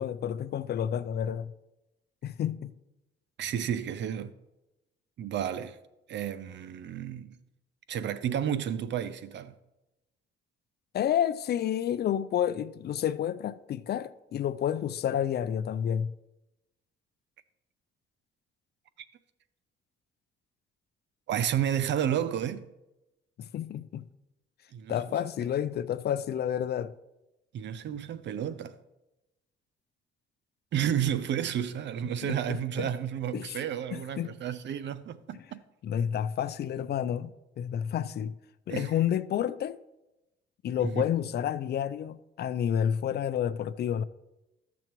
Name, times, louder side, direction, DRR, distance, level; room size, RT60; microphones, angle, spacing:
voice 1, 0.0-1.5 2.2-2.7 10.9-16.1 23.4-24.1 24.9-26.9 32.2-32.9 33.3-33.6 33.9-34.4 35.3-35.4 35.8-38.4 38.7-39.8 40.6-44.0, left 9 dB, 55° left, 0.5 m, -30 dB
voice 2, 3.4-4.3 5.2-5.8 6.1-7.3 7.9-9.5 21.3-22.6 24.7-25.0 27.5-28.7 30.7-35.6 38.7-38.9 40.8-41.0, right 9 dB, 65° right, 0.6 m, -31 dB
13.0 x 7.0 x 3.1 m
cardioid pair, 90°, 20 cm